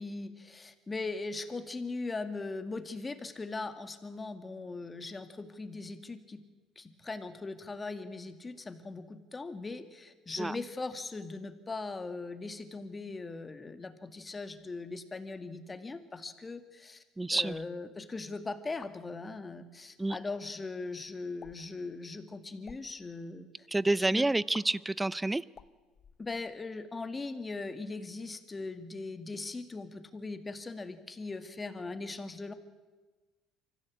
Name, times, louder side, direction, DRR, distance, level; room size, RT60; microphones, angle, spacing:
voice 1, 0.0-6.4 6.8-17.0 17.3-23.7 24.1-24.3 26.2-32.5, left 3 dB, 25° left, 9 dB, 2.1 m, -40 dB
voice 2, 17.2-17.6 20.0-20.2 23.7-25.4, right 2 dB, 10° right, 21 dB, 0.6 m, -28 dB
sound 1, 17.3-17.7 18.6-19.0 20.0-20.2 21.4-21.7 22.5-22.8 24.5-24.6 25.5-26.7, left 7 dB, 40° left, 1.0 m, -52 dB
24.5 x 15.0 x 8.6 m, 1.3 s
supercardioid pair, 80°, 0 cm